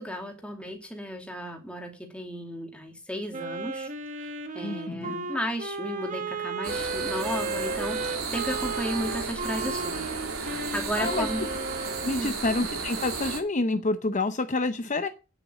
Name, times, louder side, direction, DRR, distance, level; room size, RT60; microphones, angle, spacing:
voice 1, 0.0-3.9 4.2-10.1 10.4-11.4 12.1-12.3, equal, 5° left, 2 dB, 2.5 m, -34 dB
Wind instrument woodwind instrument, 3.3-12.2, right 3 dB, 35° right, 1.4 m, -34 dB
voice 2, 4.6-5.2 11.0-11.5 12.0-15.1, left 2 dB, 35° left, 9 dB, 0.7 m, -28 dB
sound 1, 6.6-13.4, right 4 dB, 85° right, 3.3 m, -33 dB
9.4 x 7.9 x 7.5 m, 0.33 s
head